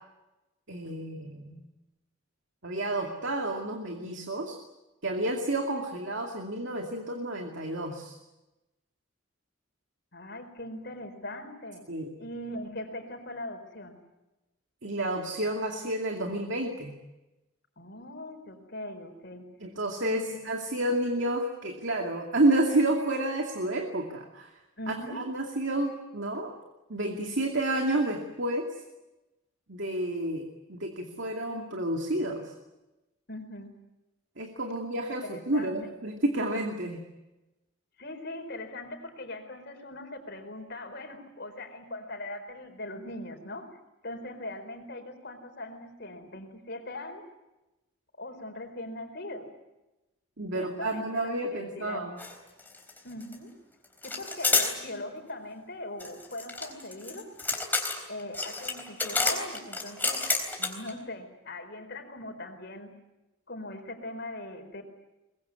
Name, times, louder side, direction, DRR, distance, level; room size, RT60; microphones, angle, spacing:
voice 1, 0.7-1.6 2.6-4.6 5.0-8.2 11.9-12.1 14.8-16.9 19.6-24.5 24.9-26.5 26.9-28.7 29.7-32.5 34.4-37.0 50.4-52.2, right 1 dB, 60° right, 3 dB, 2.5 m, -30 dB
voice 2, 10.1-11.8 12.2-14.0 17.8-19.5 20.0-20.4 24.8-25.2 33.3-33.7 35.2-35.9 38.0-47.2 48.2-49.5 50.5-52.1 53.0-53.5 54.0-57.3 58.1-60.3 60.6-62.9 63.5-64.8, left 1 dB, 50° left, 6 dB, 4.5 m, -40 dB
sound 1, 52.2-52.3 52.6-53.4 54.0-54.7 56.0-60.9, left 3 dB, 10° left, 3.8 m, -29 dB
23.5 x 21.5 x 9.7 m, 1.0 s
head